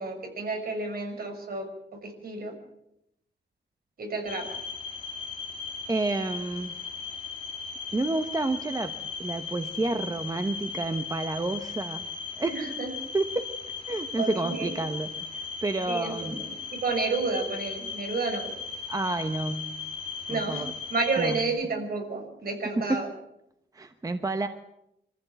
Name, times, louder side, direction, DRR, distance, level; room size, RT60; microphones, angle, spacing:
voice 1, 0.0-2.5 4.0-4.5 12.5-12.9 14.2-14.8 15.9-18.5 20.3-23.1, right 3 dB, 55° right, 3 dB, 6.1 m, -31 dB
sound 1, 4.3-21.4, left 5 dB, 30° left, 2.5 m, -37 dB
voice 2, 5.9-6.9 7.9-12.0 12.4-12.6 13.1-13.5 13.9-16.4 18.9-19.8 20.3-20.7 21.2-21.4 22.8-23.1 23.7-24.5, right 2 dB, 20° right, 8 dB, 0.9 m, -30 dB
25.0 x 15.0 x 9.0 m, 0.82 s
wide cardioid pair, 175°, 19 cm